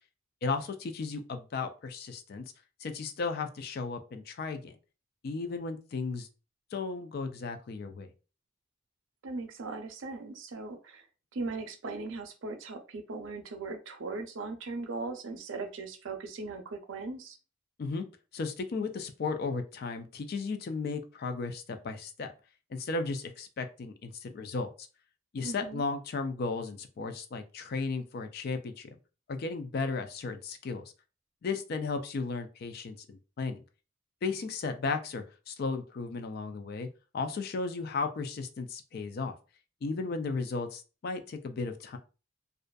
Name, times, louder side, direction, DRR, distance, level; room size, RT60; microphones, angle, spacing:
voice 1, 0.4-2.5 2.8-4.8 5.2-6.3 6.7-8.1 17.8-18.0 18.3-22.3 22.7-24.9 25.3-29.0 29.3-30.8 31.4-33.6 34.2-36.9 37.1-39.4 39.8-42.0, left 4 dB, 50° left, 7 dB, 0.3 m, -35 dB
voice 2, 9.2-11.1 11.3-17.4 25.4-25.8, right 3 dB, 70° right, 5 dB, 0.5 m, -39 dB
2.5 x 2.3 x 2.2 m, 0.33 s
head